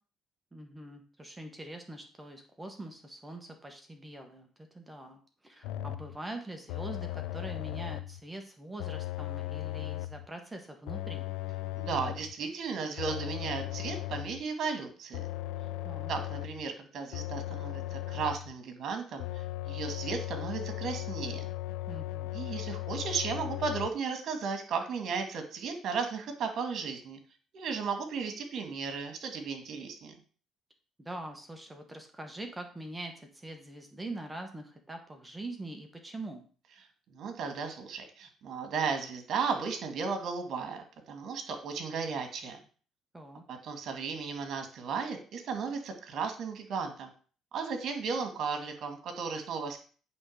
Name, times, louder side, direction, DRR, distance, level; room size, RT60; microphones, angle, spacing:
voice 1, 0.5-11.3 15.8-16.1 21.9-22.3 31.0-36.4 43.1-43.4, right 1 dB, 15° right, 4 dB, 1.4 m, -43 dB
sound 1, 5.6-6.2 6.7-8.2 8.8-10.3 10.9-12.3 13.0-14.4 15.1-16.7 17.1-18.5 19.2-23.9, left 15 dB, 90° left, 0.5 m, -37 dB
voice 2, 11.8-15.2 16.1-21.5 22.3-27.2 27.5-30.1 37.1-42.6 43.5-47.1 47.5-49.8, right 5 dB, 60° right, 6 dB, 2.1 m, -35 dB
8.6 x 3.8 x 6.5 m, 0.40 s
cardioid pair, 100°, 0 cm